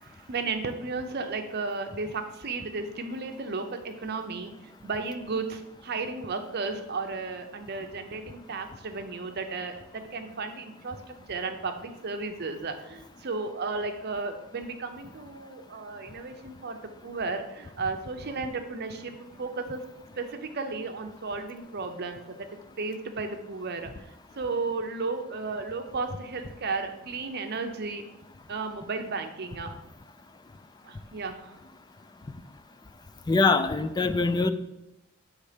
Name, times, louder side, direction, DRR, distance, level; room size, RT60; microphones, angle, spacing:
voice 1, 0.0-4.5 4.8-11.0 11.3-19.1 19.4-19.8 20.2-22.4 22.8-24.1 24.4-28.0 28.5-29.7 30.8-31.5, right 3 dB, 50° right, 6 dB, 0.6 m, -34 dB
voice 2, 33.3-34.5, left 3 dB, 20° left, 10 dB, 0.3 m, -23 dB
7.7 x 3.2 x 5.0 m, 0.91 s
head